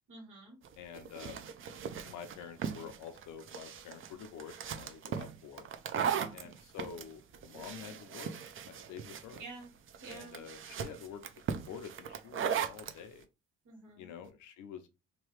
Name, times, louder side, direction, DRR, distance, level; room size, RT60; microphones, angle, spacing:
voice 1, 0.1-0.6 6.0-6.3 9.4-9.7 10.0-10.4 13.6-14.1, right 3 dB, 85° right, 1.4 m, -49 dB
sound 1, 0.6-13.0, right 7 dB, 45° right, 0.4 m, -38 dB
voice 2, 0.8-1.4 2.0-5.6 6.3-8.3 8.7-9.4 10.1-11.2 11.5-13.3 14.0-14.9, left 7 dB, 85° left, 0.7 m, -48 dB
3.0 x 2.3 x 3.1 m
cardioid pair, 90°, 30 cm